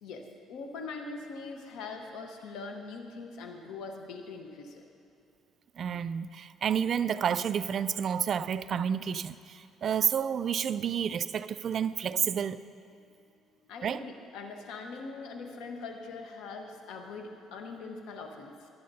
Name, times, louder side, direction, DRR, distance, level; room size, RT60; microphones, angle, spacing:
voice 1, 0.0-4.8 12.9-13.1 13.6-18.7, left 4 dB, 80° left, 3 dB, 1.2 m, -42 dB
voice 2, 5.8-12.6 13.8-14.0, right 8 dB, 50° right, 14 dB, 0.3 m, -30 dB
18.0 x 10.0 x 2.7 m, 2.5 s
cardioid pair, 120°, 0 cm